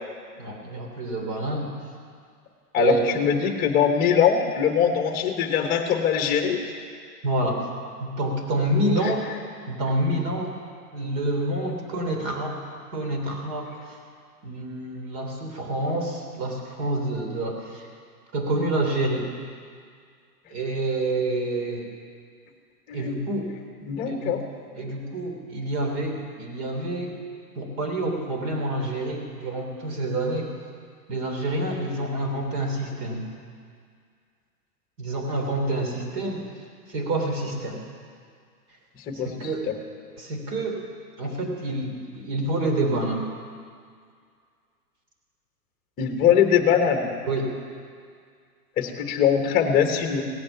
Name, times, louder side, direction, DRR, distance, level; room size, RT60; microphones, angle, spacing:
voice 1, 0.4-1.7 2.8-3.1 7.2-7.7 8.0-9.3 9.7-10.5 10.9-12.6 12.9-14.0 14.4-17.9 18.3-19.2 20.5-21.9 22.9-23.5 24.0-24.4 24.8-27.2 27.5-30.5 31.1-33.3 35.0-36.4 36.9-37.8 39.1-39.7 40.2-40.8 41.2-43.3 47.3-47.5, right 1 dB, 40° right, 2 dB, 3.1 m, -27 dB
voice 2, 2.7-6.6 22.9-23.2 23.8-24.4 39.1-39.3 39.7-39.8 46.0-47.1 48.8-50.2, left 8 dB, 20° left, 4 dB, 1.3 m, -22 dB
17.5 x 8.9 x 7.1 m, 2.1 s
hypercardioid pair, 150°, 47 cm